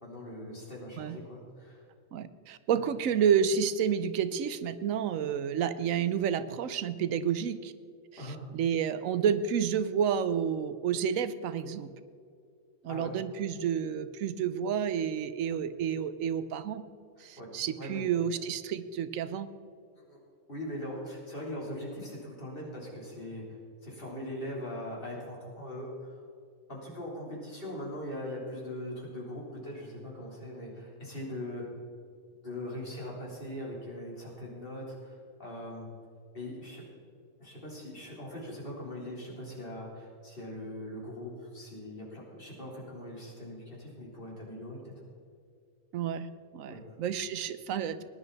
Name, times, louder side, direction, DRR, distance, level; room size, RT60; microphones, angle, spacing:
voice 1, 0.0-1.8 8.2-8.4 12.9-13.1 17.2-17.5 17.8-18.1 20.0-20.2 20.5-23.4 23.8-26.2 26.7-31.7 32.4-35.9 36.3-36.8 37.4-44.9 46.7-46.8, left 1 dB, 45° left, -4 dB, 3.8 m, -41 dB
voice 2, 2.1-7.7 8.2-11.9 12.8-16.8 17.2-19.5 45.9-46.3 46.5-48.0, right 8 dB, 90° right, 13 dB, 1.1 m, -30 dB
19.5 x 10.5 x 4.1 m, 2.3 s
omnidirectional pair, 1.3 m